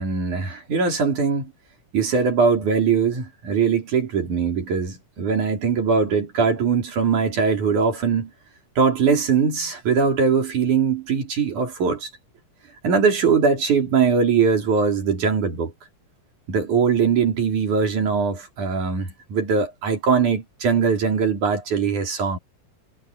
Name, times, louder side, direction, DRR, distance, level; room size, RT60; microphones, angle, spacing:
voice 1, 0.0-1.5 1.9-8.3 8.8-12.1 12.8-15.7 16.5-22.4, right 5 dB, 85° right, 5.5 m, -21 dB
omnidirectional pair, 3.4 m